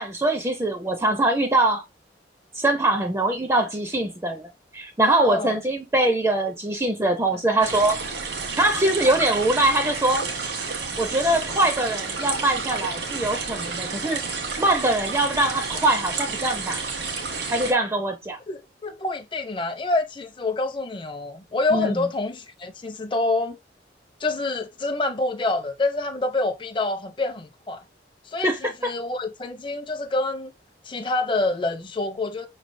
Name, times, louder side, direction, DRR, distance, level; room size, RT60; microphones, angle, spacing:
voice 1, 0.0-1.8 2.5-8.0 8.6-10.2 11.0-14.2 14.6-16.8 17.5-18.4 21.7-22.0 28.4-28.9, right 2 dB, 15° right, 0.5 m, -23 dB
voice 2, 5.2-5.6 7.3-7.4 18.5-23.6 24.2-27.8 28.2-30.5 30.8-32.5, left 2 dB, 30° left, 0.6 m, -27 dB
sound 1, 7.6-17.7, right 4 dB, 80° right, 1.4 m, -30 dB
5.8 x 3.2 x 2.6 m
head